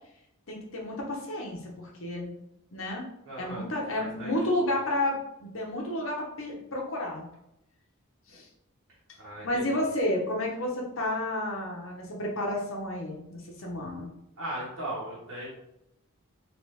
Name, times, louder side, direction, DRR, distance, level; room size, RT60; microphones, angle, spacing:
voice 1, 0.5-2.3 2.7-3.1 3.4-7.3 8.3-8.5 9.4-14.1, left 1 dB, 65° left, -1 dB, 0.9 m, -31 dB
voice 2, 3.2-4.3 4.6-4.8 9.2-9.7 14.4-15.5, right 1 dB, 85° right, -7 dB, 1.1 m, -38 dB
3.1 x 3.0 x 3.2 m, 0.81 s
head